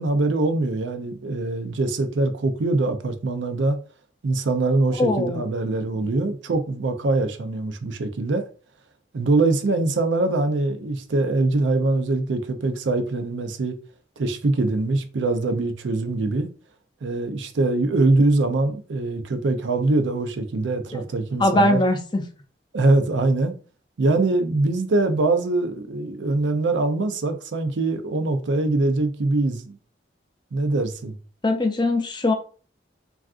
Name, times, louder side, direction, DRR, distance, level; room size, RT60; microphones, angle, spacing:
voice 1, 0.0-3.8 4.2-8.5 9.1-13.8 14.2-16.5 17.0-21.8 22.7-23.5 24.0-29.8 30.5-31.2, right 2 dB, 85° right, 0.5 m, -23 dB
voice 2, 5.0-5.4 6.0-6.1 20.9-21.0 21.4-22.2 31.4-32.3, left 1 dB, 25° left, 0.4 m, -21 dB
3.5 x 2.4 x 2.4 m
head